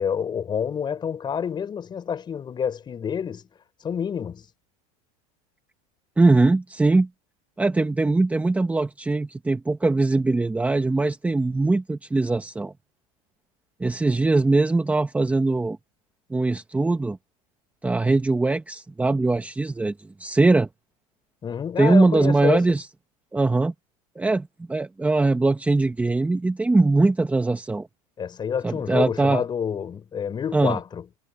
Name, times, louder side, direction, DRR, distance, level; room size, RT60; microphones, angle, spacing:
voice 1, 0.0-3.5 3.8-4.4 21.4-22.7 28.2-31.0, left 7 dB, 25° left, 5.9 m, -28 dB
voice 2, 6.2-7.1 7.6-12.7 13.8-15.8 16.3-17.2 17.8-19.9 20.2-20.7 21.8-22.9 23.3-23.7 24.1-27.9 28.6-29.4 30.5-30.8, right 3 dB, 10° right, 1.5 m, -21 dB
supercardioid pair, 135°, 18 cm